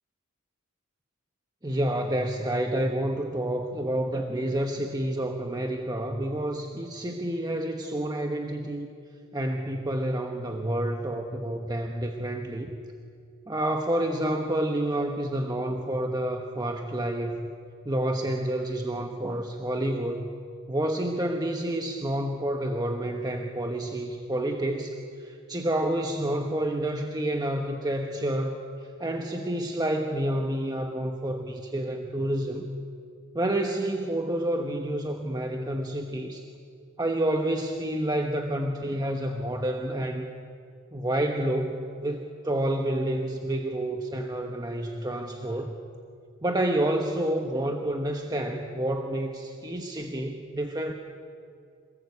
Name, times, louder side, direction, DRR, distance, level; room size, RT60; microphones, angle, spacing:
voice 1, 1.6-8.9 9.3-12.7 13.5-17.5 17.8-20.3 20.7-28.6 29.0-32.7 33.3-36.5 37.0-40.2 40.9-45.7 46.4-50.9, right 1 dB, 20° right, 3 dB, 1.2 m, -29 dB
27.0 x 19.5 x 8.3 m, 2.4 s
head